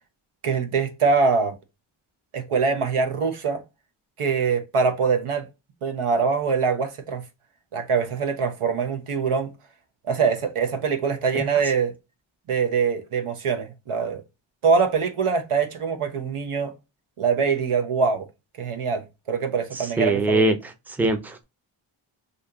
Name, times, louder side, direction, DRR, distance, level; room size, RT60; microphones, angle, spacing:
voice 1, 0.4-1.5 2.3-3.6 4.2-5.5 5.8-7.2 7.7-9.5 10.1-11.9 12.5-14.2 14.6-16.7 17.2-18.3 18.6-20.5, right 5 dB, 80° right, 0.8 m, -23 dB
voice 2, 19.7-21.4, right 1 dB, 5° right, 0.5 m, -23 dB
2.7 x 2.6 x 3.4 m
wide cardioid pair, 55°, 50 cm